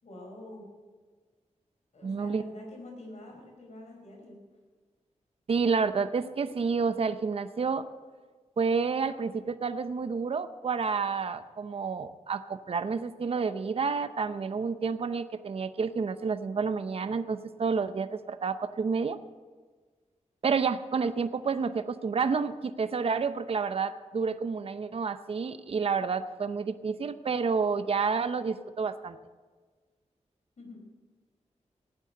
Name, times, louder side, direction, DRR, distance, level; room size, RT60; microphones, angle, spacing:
voice 1, 0.0-0.7 1.9-4.4 30.6-30.9, left 1 dB, 65° left, 1 dB, 5.0 m, -46 dB
voice 2, 2.0-2.4 5.5-7.8 8.6-19.2 20.4-29.2, right 5 dB, 50° right, 10 dB, 0.7 m, -29 dB
16.5 x 9.4 x 7.6 m, 1.4 s
wide cardioid pair, 90°, 12 cm